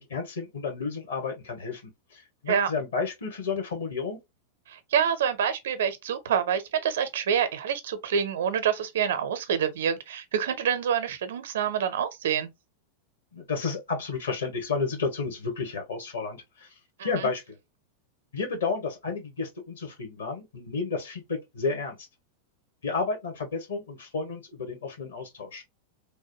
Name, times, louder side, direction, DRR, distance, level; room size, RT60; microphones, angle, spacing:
voice 1, 0.0-1.8 2.4-4.2 13.3-16.4 17.0-17.4 18.3-22.0 22.8-25.6, left 4 dB, 65° left, 1.3 m, -31 dB
voice 2, 4.7-12.5 17.0-17.3, right 8 dB, 60° right, 0.6 m, -27 dB
3.2 x 2.2 x 2.9 m
figure-of-eight pair, 90°, 0 cm